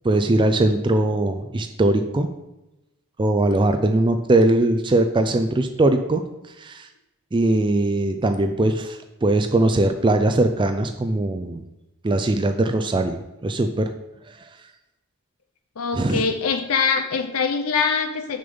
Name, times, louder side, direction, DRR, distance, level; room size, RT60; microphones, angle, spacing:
voice 1, 0.0-2.3 3.2-6.2 6.6-6.9 7.3-11.6 12.0-13.9 16.0-16.2, right 2 dB, 20° right, 6 dB, 0.4 m, -20 dB
voice 2, 15.8-18.4, left 5 dB, 80° left, 7 dB, 0.6 m, -23 dB
6.7 x 5.3 x 5.4 m, 0.95 s
head